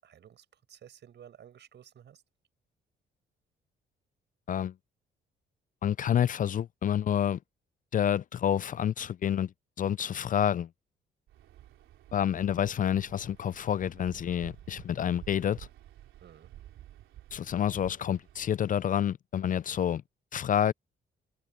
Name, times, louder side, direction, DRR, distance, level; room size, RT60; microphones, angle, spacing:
voice 1, 0.0-2.2 16.2-16.5, right 9 dB, 60° right, 5.9 m, -54 dB
voice 2, 5.8-7.4 7.9-9.5 9.8-10.7 12.1-15.7 17.3-20.0 20.3-20.7, left 9 dB, 40° left, 0.4 m, -28 dB
Waves surf, 11.3-18.6, right 12 dB, 85° right, 3.6 m, -51 dB
cardioid pair, 90°, 20 cm